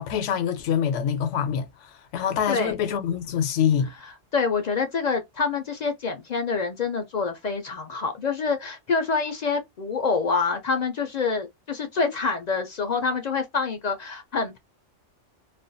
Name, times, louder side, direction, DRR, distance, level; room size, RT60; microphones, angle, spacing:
voice 1, 0.0-3.9, left 8 dB, 85° left, 0.9 m, -25 dB
voice 2, 2.1-2.7 4.3-14.6, left 5 dB, 60° left, 0.4 m, -26 dB
2.4 x 2.2 x 2.5 m
omnidirectional pair, 1.2 m